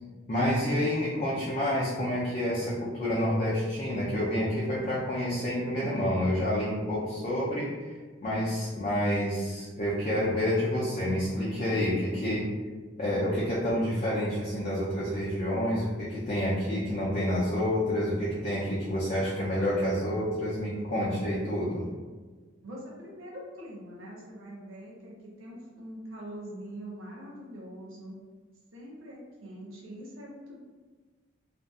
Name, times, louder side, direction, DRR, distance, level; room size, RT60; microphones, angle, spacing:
voice 1, 0.3-7.7 8.2-12.5 13.0-21.8, equal, 40° left, -8 dB, 0.5 m, -28 dB
voice 2, 22.6-25.1 25.4-28.1 28.7-30.6, equal, 90° right, -4 dB, 0.6 m, -43 dB
2.5 x 2.3 x 2.4 m, 1.4 s
head